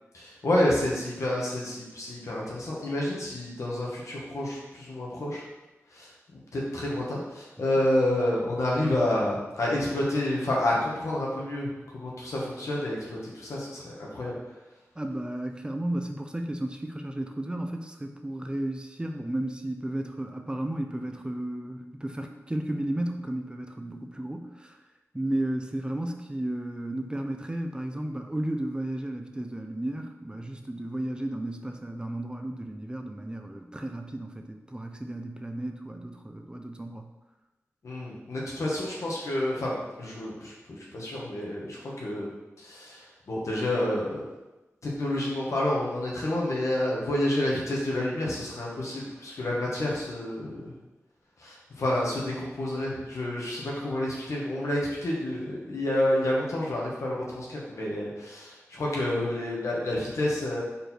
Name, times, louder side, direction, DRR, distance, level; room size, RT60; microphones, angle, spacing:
voice 1, 0.1-5.4 5.9-14.4 37.8-42.3 42.6-44.3 44.8-50.7 51.4-60.6, left 1 dB, 80° left, -4 dB, 1.8 m, -29 dB
voice 2, 15.0-24.8 25.1-37.1, right 1 dB, 15° right, 4 dB, 0.6 m, -33 dB
5.2 x 4.5 x 4.5 m, 1.0 s
wide cardioid pair, 65°, 5 cm